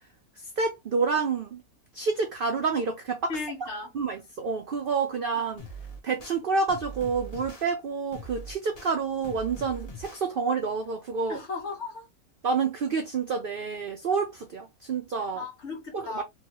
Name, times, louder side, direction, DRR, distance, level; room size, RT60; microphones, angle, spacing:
voice 1, 0.4-1.6 1.9-3.3 3.6-3.7 3.9-5.6 6.0-11.4 12.4-15.4 15.9-16.2, right 5 dB, 65° right, 0.5 m, -28 dB
voice 2, 3.3-3.9 11.3-12.1 15.4-16.2, left 4 dB, 50° left, 1.3 m, -35 dB
sound 1, 5.6-6.4 6.7-7.6 8.1-8.9 9.2-10.2, right 1 dB, 35° left, 0.7 m, -41 dB
3.1 x 2.3 x 2.9 m
omnidirectional pair, 1.5 m